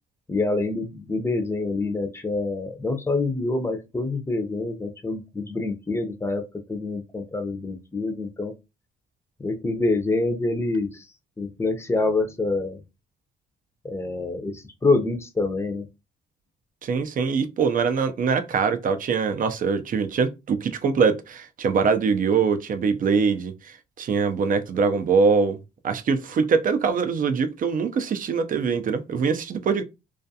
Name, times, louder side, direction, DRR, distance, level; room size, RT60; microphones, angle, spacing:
voice 1, 0.3-8.5 9.4-11.1 11.4-12.8 13.8-15.8, left 3 dB, 15° left, 0.6 m, -26 dB
voice 2, 16.8-25.6 25.8-29.8, right 5 dB, 45° right, 0.5 m, -23 dB
2.3 x 2.3 x 2.7 m
cardioid pair, 90°, 20 cm